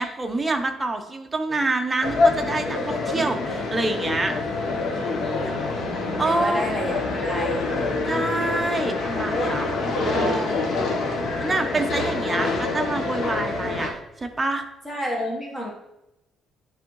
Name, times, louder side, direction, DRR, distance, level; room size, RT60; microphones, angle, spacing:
voice 1, 0.0-4.4 5.4-5.5 6.2-6.7 8.1-9.8 10.0-10.9 11.4-14.6, right 2 dB, 20° right, 5 dB, 0.7 m, -27 dB
sound 1, 2.0-13.9, left 3 dB, 55° left, 1.1 m, -26 dB
voice 2, 5.2-7.7 14.8-15.7, equal, 15° left, -2 dB, 1.2 m, -30 dB
9.7 x 3.5 x 3.1 m, 0.90 s
cardioid pair, 130°, 0 cm